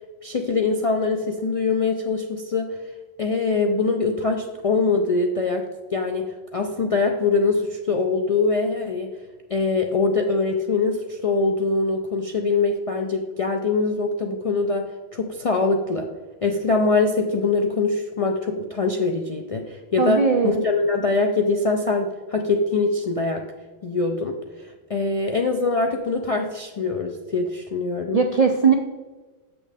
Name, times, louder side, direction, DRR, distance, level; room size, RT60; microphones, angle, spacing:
voice 1, 0.2-2.8 3.2-5.6 5.9-9.1 9.5-14.9 15.1-16.1 16.4-23.4 23.8-28.2, left 3 dB, 55° left, 2 dB, 0.4 m, -23 dB
voice 2, 20.0-20.6 28.1-28.7, right 5 dB, 60° right, 4 dB, 0.4 m, -19 dB
7.3 x 6.0 x 3.4 m, 1.3 s
omnidirectional pair, 1.3 m